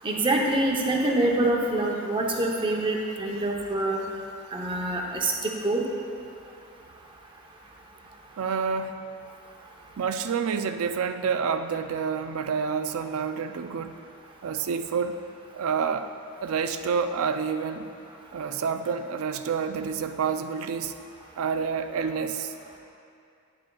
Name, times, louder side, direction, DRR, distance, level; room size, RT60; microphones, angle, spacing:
voice 1, 0.0-4.0 4.5-5.8, right 2 dB, 25° right, -1 dB, 0.8 m, -25 dB
voice 2, 8.4-9.0 10.0-14.0 14.4-15.2 15.5-16.1 16.4-17.9 18.3-21.0 21.4-22.5, right 6 dB, 70° right, 9 dB, 0.4 m, -28 dB
9.6 x 8.9 x 2.3 m, 2.5 s
head